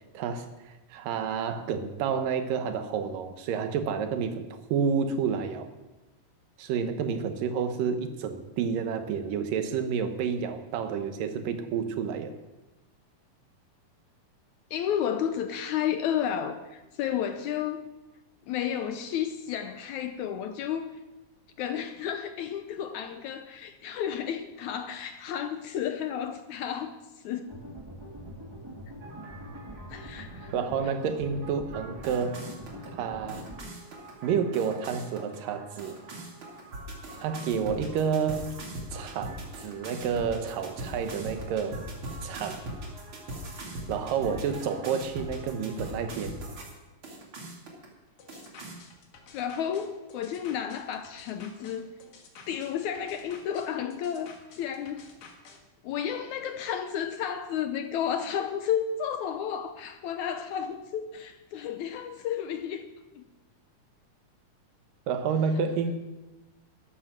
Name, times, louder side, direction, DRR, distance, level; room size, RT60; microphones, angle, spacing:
voice 1, 0.1-5.7 6.6-12.3 30.5-32.5 32.9-33.5 34.2-36.0 37.2-38.5 38.9-41.8 42.2-42.7 43.9-46.4 65.1-66.0, right 6 dB, 85° right, 2.8 m, -30 dB
voice 2, 14.7-17.9 18.5-21.0 21.6-26.9 27.2-27.6 29.9-30.5 49.3-51.9 52.5-55.1 55.8-62.8 63.2-63.3, left 9 dB, 75° left, 1.9 m, -32 dB
sound 1, 27.5-33.6, equal, 15° right, 0.9 m, -43 dB
sound 2, 29.0-46.7 47.0-47.9 48.3-48.8, right 1 dB, 40° right, 3.0 m, -41 dB
sound 3, 48.2-55.6, left 4 dB, 60° left, 2.8 m, -52 dB
13.0 x 11.5 x 6.1 m
omnidirectional pair, 3.8 m